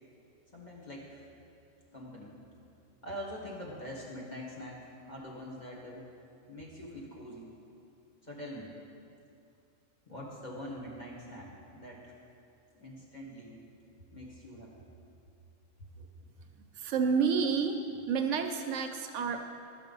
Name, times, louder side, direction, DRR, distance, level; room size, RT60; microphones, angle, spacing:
voice 1, 0.5-1.2 1.9-2.3 3.0-6.0 6.5-7.5 8.2-8.7 10.1-12.0 12.7-13.6 14.1-14.9, equal, 35° left, -4 dB, 1.5 m, -44 dB
voice 2, 16.8-17.8 18.1-19.4, right 6 dB, 70° right, 6 dB, 0.9 m, -29 dB
11.5 x 5.7 x 5.3 m, 2.6 s
omnidirectional pair, 1.3 m